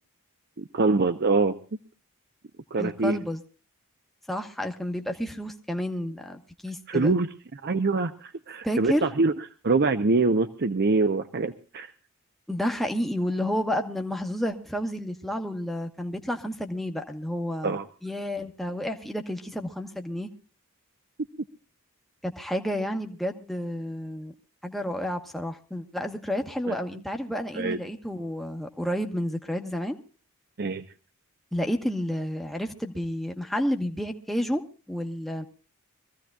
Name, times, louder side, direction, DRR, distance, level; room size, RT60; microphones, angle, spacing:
voice 1, 0.6-1.6 2.7-3.2 6.9-7.3 7.5-9.3 9.6-11.9 17.6-17.9 26.7-26.8 27.6-27.8 30.6-30.8, right 3 dB, 50° right, 10 dB, 0.6 m, -24 dB
voice 2, 2.8-3.4 4.3-7.1 8.6-9.1 12.5-20.3 22.4-24.3 24.6-30.0 31.5-34.6 34.9-35.4, equal, ahead, 3 dB, 1.1 m, -30 dB
24.5 x 15.0 x 2.3 m, 0.38 s
head